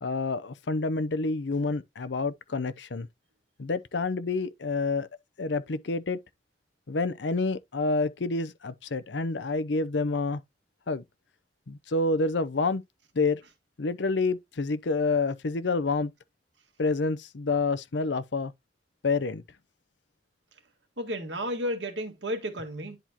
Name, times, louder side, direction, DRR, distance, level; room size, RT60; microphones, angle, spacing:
voice 1, 0.0-3.1 3.6-5.1 5.4-6.2 6.9-10.4 10.9-11.0 11.7-12.8 13.2-13.4 13.8-16.1 16.8-18.5 19.0-19.4, left 3 dB, 85° left, 0.7 m, -28 dB
voice 2, 21.0-23.0, equal, 85° right, 1.9 m, -32 dB
10.5 x 4.4 x 2.9 m
head